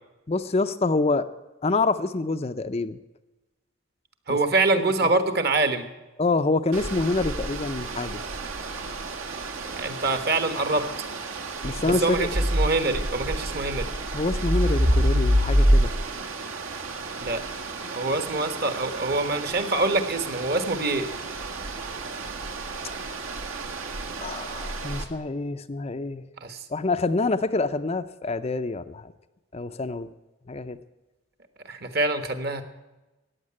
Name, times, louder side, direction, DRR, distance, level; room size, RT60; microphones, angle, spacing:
voice 1, 0.3-1.3 1.6-3.0 4.3-4.4 4.7-4.8 6.2-8.2 11.6-12.3 14.1-15.9 24.2-26.2 26.7-29.1 29.5-30.1 30.5-30.8, left 3 dB, 30° left, 9 dB, 0.5 m, -26 dB
voice 2, 4.3-5.9 9.6-10.9 11.8-13.9 17.2-17.4 18.0-21.1 26.4-26.6 31.7-32.6, right 2 dB, 45° right, 9 dB, 1.4 m, -25 dB
sound 1, 6.7-25.0, right 1 dB, 75° right, 1.9 m, -28 dB
14.5 x 9.5 x 8.6 m, 1.1 s
head